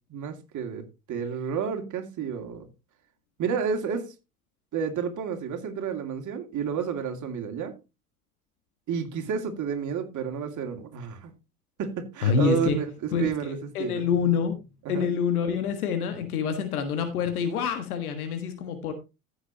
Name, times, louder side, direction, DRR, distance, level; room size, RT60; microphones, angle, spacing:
voice 1, 0.1-0.8 1.1-2.7 3.4-4.1 4.7-7.7 8.9-11.3 11.8-14.0 14.8-15.1, right 7 dB, 40° right, 2.6 m, -30 dB
voice 2, 12.2-12.8 13.1-14.6 14.9-18.9, left 6 dB, 75° left, 1.7 m, -27 dB
15.0 x 6.9 x 2.9 m
hypercardioid pair, 75°, 44 cm